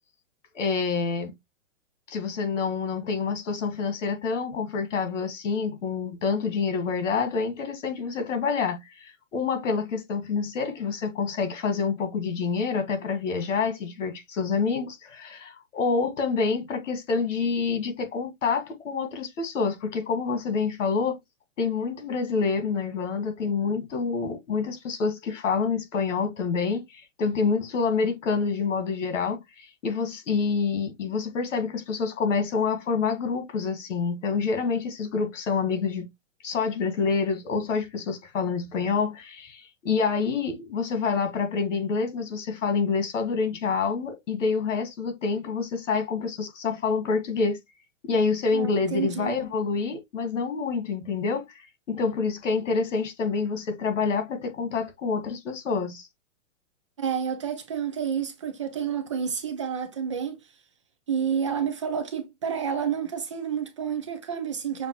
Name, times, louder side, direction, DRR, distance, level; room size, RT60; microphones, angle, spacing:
voice 1, 0.5-1.3 2.1-21.2 21.6-36.1 36.4-47.6 48.0-51.5 51.9-56.1, left 5 dB, 75° left, 1.9 m, -27 dB
voice 2, 48.5-49.4 57.0-60.4 61.1-64.9, right 7 dB, 25° right, 0.4 m, -29 dB
6.6 x 2.5 x 3.0 m
hypercardioid pair, 165°, 37 cm